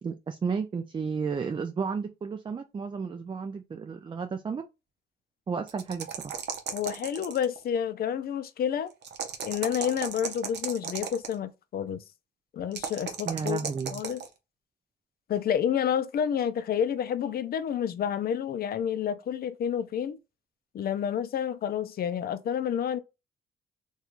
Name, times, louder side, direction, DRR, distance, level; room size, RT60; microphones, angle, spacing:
voice 1, 0.0-4.6 5.5-6.1 13.3-14.0, right 5 dB, 25° right, 0.4 m, -32 dB
sound 1, 5.7-7.6 9.0-11.3 12.7-14.3, right 7 dB, 65° right, 0.7 m, -35 dB
voice 2, 6.7-8.9 9.4-12.0 12.5-13.6 13.9-14.2 15.3-20.2 20.7-23.0, left 8 dB, 55° left, 0.4 m, -29 dB
2.9 x 2.3 x 2.5 m
cardioid pair, 80°, 19 cm